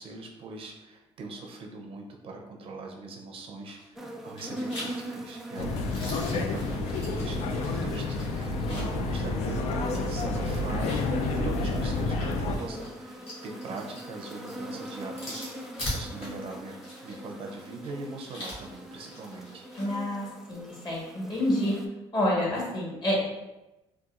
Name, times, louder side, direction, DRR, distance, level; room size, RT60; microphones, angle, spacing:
voice 1, 0.0-16.7 17.0-19.7, right 3 dB, 55° right, 1 dB, 0.5 m, -41 dB
sound 1, 3.6-4.1 4.4-9.1 9.4-9.5 10.6-19.9, left 1 dB, 55° left, 1.4 m, -42 dB
sound 2, 4.0-21.9, right 1 dB, 5° right, 0.3 m, -43 dB
sound 3, 5.6-12.6, left 3 dB, 70° left, 0.4 m, -29 dB
voice 2, 19.8-21.7 22.1-23.2, left 1 dB, 35° left, -4 dB, 1.3 m, -28 dB
3.9 x 2.3 x 2.4 m, 1.0 s
cardioid pair, 110°, 11 cm